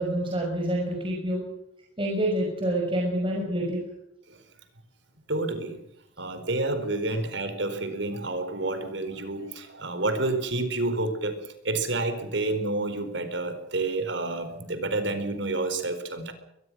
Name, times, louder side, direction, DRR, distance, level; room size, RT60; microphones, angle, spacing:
voice 1, 0.0-1.4 2.0-3.8, right 1 dB, 25° right, -1 dB, 6.2 m, -27 dB
voice 2, 5.3-5.8 6.2-16.3, right 2 dB, 65° right, 9 dB, 4.5 m, -29 dB
23.5 x 21.5 x 6.3 m, 0.80 s
head